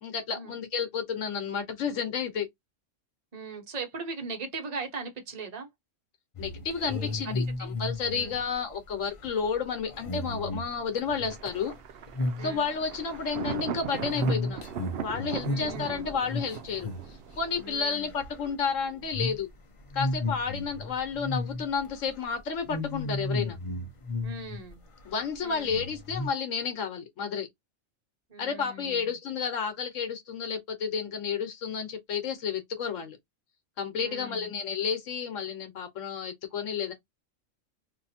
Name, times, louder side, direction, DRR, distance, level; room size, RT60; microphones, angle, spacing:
voice 1, 0.0-2.5 6.4-11.7 12.4-14.6 15.0-16.9 17.4-19.5 19.9-23.6 25.0-27.5 28.4-33.2 33.8-36.9, left 6 dB, 80° left, 1.2 m, -31 dB
voice 2, 3.3-5.7 6.9-7.7 8.1-8.3 12.4-12.6 15.4-16.1 17.5-18.1 24.2-24.8 25.4-25.8 28.3-29.1 33.9-34.5, right 3 dB, 35° right, 1.1 m, -39 dB
sound 1, 6.3-11.8 12.1-12.6 12.8-17.7 18.0-18.5 19.0-19.4 19.8-21.9 22.1-22.3 22.7-24.7 25.0-25.1 25.6-26.3, left 2 dB, 35° left, 0.6 m, -34 dB
Thunder, 11.3-17.7, right 8 dB, 65° right, 0.7 m, -38 dB
2.6 x 2.5 x 4.2 m
omnidirectional pair, 1.3 m